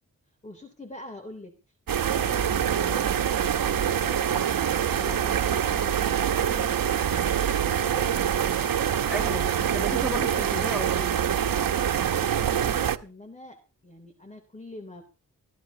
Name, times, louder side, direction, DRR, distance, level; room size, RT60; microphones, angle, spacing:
voice 1, 0.4-1.5 1.9-7.0 7.4-8.2 12.1-13.6 13.8-15.0, left 2 dB, 20° left, 3.3 m, -44 dB
sound 1, 1.9-13.0, right 9 dB, 80° right, 1.1 m, -25 dB
voice 2, 9.1-11.2, right 1 dB, 5° right, 4.6 m, -34 dB
23.0 x 14.5 x 2.9 m
wide cardioid pair, 115°, 34 cm